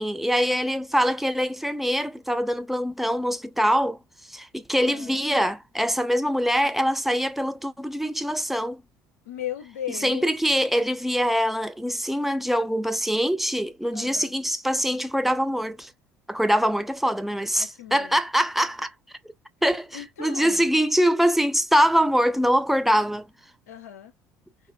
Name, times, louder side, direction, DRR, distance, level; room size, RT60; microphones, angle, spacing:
voice 1, 0.0-4.0 4.3-8.8 9.9-15.9 16.3-18.9 19.6-23.3, equal, 5° right, 0.4 m, -23 dB
voice 2, 4.8-5.2 9.3-10.3 13.9-14.3 17.6-18.2 19.9-20.7 23.7-24.1, left 10 dB, 80° left, 0.6 m, -37 dB
3.8 x 2.1 x 2.4 m
figure-of-eight pair, 60°, 8 cm